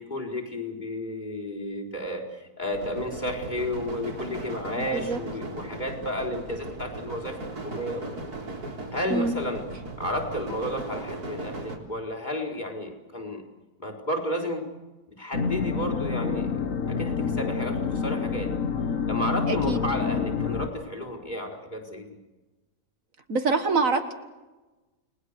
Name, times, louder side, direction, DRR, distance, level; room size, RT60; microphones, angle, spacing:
voice 1, 0.0-8.0 8.9-9.6 10.0-13.4 13.8-14.6 15.2-18.5 19.1-22.1, left 1 dB, 30° left, 1 dB, 4.7 m, -32 dB
sound 1, 2.7-11.8, right 2 dB, 80° right, 4.4 m, -37 dB
sound 2, 15.3-20.7, left 5 dB, 60° left, 1.7 m, -28 dB
voice 2, 19.5-19.8 23.3-24.1, right 4 dB, 60° right, 7 dB, 2.0 m, -25 dB
30.0 x 21.0 x 6.7 m, 1.1 s
omnidirectional pair, 1.6 m